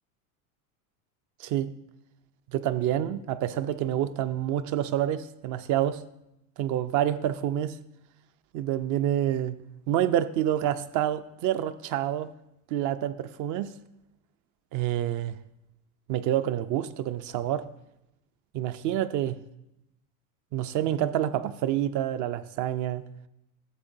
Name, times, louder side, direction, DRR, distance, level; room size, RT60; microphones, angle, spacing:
voice 1, 2.5-6.0 6.6-7.8 8.5-9.6 9.9-12.3 12.7-13.7 14.7-15.4 16.1-17.6 18.5-19.4 20.5-23.0, right 11 dB, 45° right, 13 dB, 0.5 m, -27 dB
12.5 x 7.1 x 2.6 m, 0.83 s
supercardioid pair, 100°, 43 cm